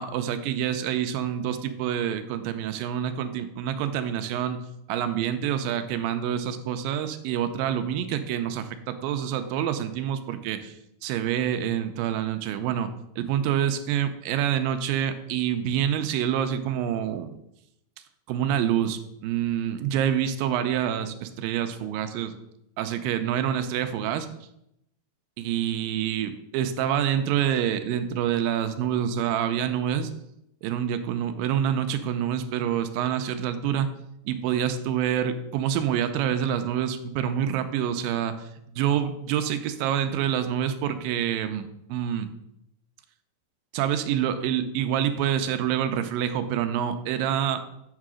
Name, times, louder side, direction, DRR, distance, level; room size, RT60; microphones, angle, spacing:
voice 1, 0.0-4.6 4.9-12.9 13.2-17.3 18.3-22.4 22.8-24.3 25.4-30.1 30.6-33.9 34.3-38.5 38.8-42.3 43.7-47.6, right 9 dB, 85° right, 9 dB, 2.3 m, -27 dB
8.3 x 3.7 x 6.1 m, 0.79 s
omnidirectional pair, 4.0 m